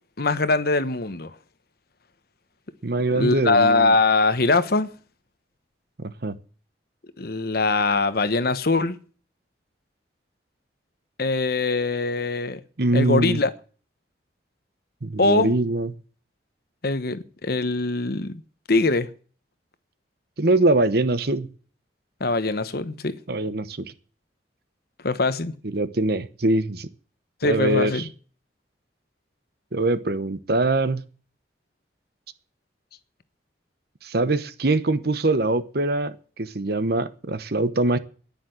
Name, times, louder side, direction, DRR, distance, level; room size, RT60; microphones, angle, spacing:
voice 1, 0.2-1.3 3.2-4.9 7.2-9.0 11.2-12.6 12.9-13.5 15.2-15.5 16.8-18.4 18.7-19.1 22.2-23.1 25.0-25.5 27.4-28.0, left 3 dB, 55° left, 1.1 m, -22 dB
voice 2, 2.8-4.0 6.2-6.4 12.8-13.4 15.0-15.9 20.4-21.5 23.3-23.8 25.6-26.9 27.4-28.1 29.7-31.0 34.0-38.0, right 2 dB, 60° right, 1.0 m, -23 dB
10.0 x 10.0 x 7.8 m
head